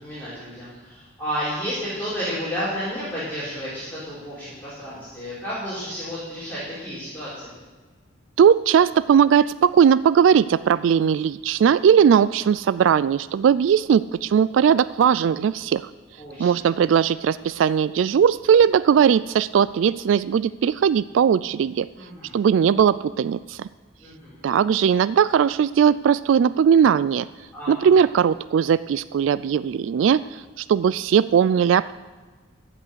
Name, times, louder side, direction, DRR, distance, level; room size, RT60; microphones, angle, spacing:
voice 1, 0.0-7.5 16.2-16.6 21.9-22.3 24.0-24.4 27.5-27.9, equal, 10° left, -11 dB, 4.2 m, -32 dB
voice 2, 8.4-15.8 16.4-21.9 22.3-23.7 24.4-27.3 27.7-31.9, right 7 dB, 80° right, 17 dB, 0.3 m, -19 dB
15.0 x 5.9 x 8.1 m, 1.4 s
head